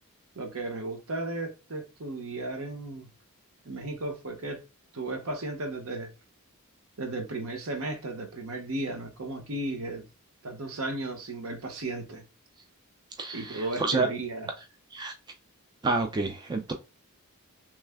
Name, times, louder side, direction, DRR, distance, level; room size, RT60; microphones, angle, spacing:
voice 1, 0.3-3.1 3.6-4.6 4.9-6.1 7.0-10.0 10.4-12.2 13.3-14.5, right 2 dB, 70° right, 0.8 m, -35 dB
voice 2, 13.2-14.1 14.9-15.1 15.8-16.7, right 3 dB, 20° right, 0.3 m, -28 dB
3.1 x 2.1 x 3.4 m
head